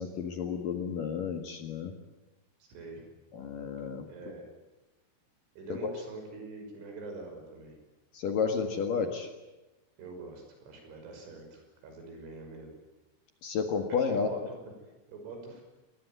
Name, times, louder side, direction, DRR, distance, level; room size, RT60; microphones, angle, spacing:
voice 1, 0.0-1.9 3.3-4.1 5.8-5.9 8.1-9.3 13.4-14.3, left 6 dB, 55° left, 5 dB, 2.7 m, -31 dB
voice 2, 2.6-3.0 4.1-4.4 5.6-7.8 10.0-12.8 14.1-14.5 15.1-15.6, right 3 dB, 70° right, 4 dB, 8.2 m, -44 dB
28.0 x 20.5 x 9.5 m, 1.1 s
omnidirectional pair, 5.8 m